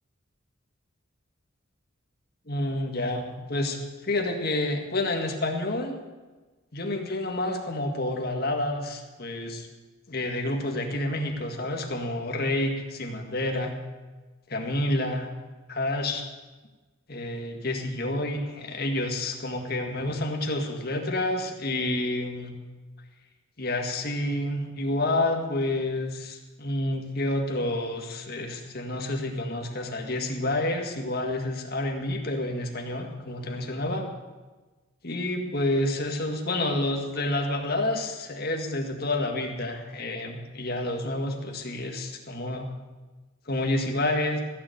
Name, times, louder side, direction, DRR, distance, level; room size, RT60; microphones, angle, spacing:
voice 1, 2.5-3.8 4.1-6.0 6.7-9.7 10.1-13.8 14.5-15.3 15.7-16.2 17.1-22.6 23.6-34.1 35.0-42.7 43.5-44.4, left 1 dB, 50° left, 2 dB, 1.9 m, -29 dB
15.5 x 7.1 x 9.2 m, 1.2 s
head